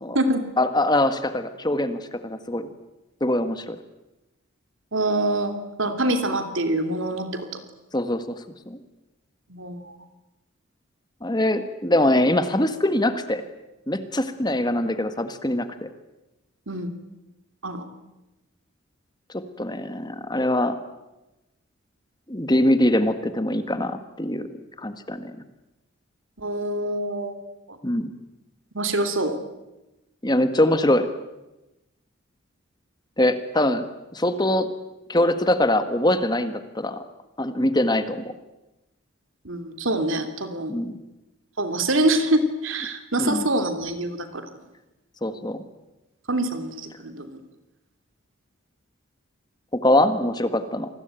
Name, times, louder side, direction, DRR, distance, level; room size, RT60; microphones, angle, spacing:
voice 1, 0.6-2.7 3.2-3.8 7.9-8.8 11.2-13.4 13.9-15.7 19.3-20.7 22.3-24.5 24.8-25.3 27.8-28.1 30.2-31.1 33.2-33.8 34.1-34.7 35.1-37.0 37.4-38.3 40.7-40.9 43.2-43.5 45.2-45.6 49.7-50.9, left 1 dB, 20° left, 10 dB, 1.5 m, -23 dB
voice 2, 4.9-5.5 5.8-7.6 9.5-9.9 16.7-16.9 17.6-17.8 26.4-27.4 27.7-27.8 28.7-29.4 39.4-40.7 41.6-44.5 46.3-47.4, right 1 dB, 70° right, 8 dB, 3.0 m, -25 dB
27.5 x 20.5 x 9.0 m, 1.0 s
head